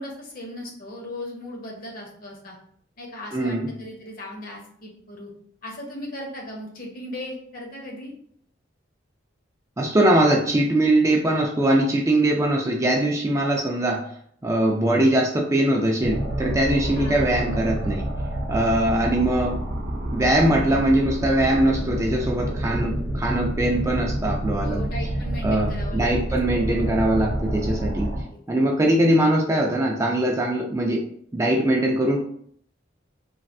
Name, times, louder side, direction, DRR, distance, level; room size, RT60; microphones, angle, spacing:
voice 1, 0.0-2.6 3.0-5.3 5.6-8.1 16.9-17.4 24.6-26.4 28.3-28.4, left 1 dB, 50° left, -1 dB, 0.8 m, -37 dB
voice 2, 3.3-3.7 9.8-14.0 14.4-18.0 18.5-19.5 20.1-24.8 25.4-28.1 28.5-31.0 31.3-32.2, right 1 dB, 15° right, 0 dB, 0.3 m, -21 dB
sound 1, 16.0-28.2, right 1 dB, 75° right, 0.6 m, -28 dB
3.1 x 2.5 x 2.6 m, 0.63 s
head